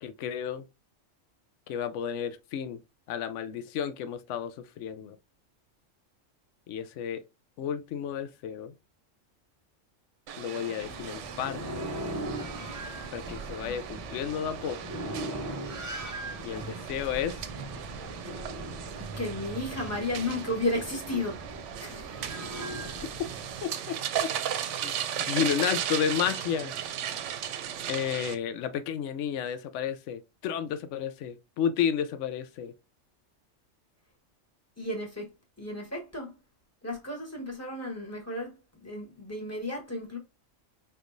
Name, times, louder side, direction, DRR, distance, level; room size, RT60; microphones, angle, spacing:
voice 1, 0.0-0.6 1.7-2.8 3.1-5.2 6.7-7.2 7.6-8.7 10.4-11.6 13.1-14.8 16.4-17.4 23.2-23.3 23.6-24.3 24.8-24.9 25.3-26.7 27.9-32.7, left 8 dB, 75° left, 0.9 m, -32 dB
sound 1, 10.3-28.3, right 9 dB, 75° right, 0.9 m, -37 dB
sound 2, 10.8-23.6, right 1 dB, 20° right, 0.5 m, -39 dB
voice 2, 19.2-21.4 21.8-22.5 25.0-25.1 34.8-35.3 35.6-36.3 36.8-40.2, left 1 dB, 15° left, 1.2 m, -33 dB
4.6 x 3.3 x 2.5 m
omnidirectional pair, 1.3 m